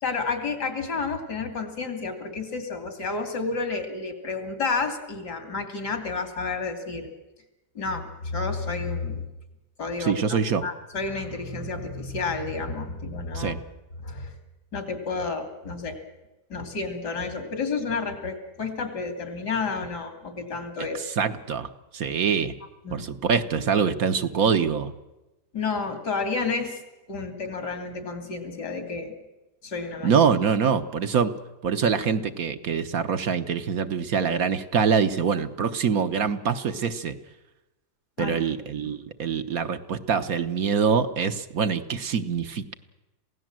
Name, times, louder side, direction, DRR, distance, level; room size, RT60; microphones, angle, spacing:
voice 1, 0.0-7.1 7.7-9.3 9.8-13.6 14.0-14.3 14.7-16.0 16.5-21.0 22.8-23.1 25.5-26.8 27.1-29.1 29.6-30.1 38.2-38.4, left 4 dB, 85° left, 6 dB, 3.3 m, -30 dB
voice 2, 10.0-10.6 13.3-13.6 20.8-22.6 22.9-24.9 30.0-31.3 31.6-37.2 38.2-42.7, right 6 dB, 65° right, 8 dB, 1.5 m, -24 dB
27.0 x 17.0 x 7.6 m, 1.0 s
omnidirectional pair, 1.7 m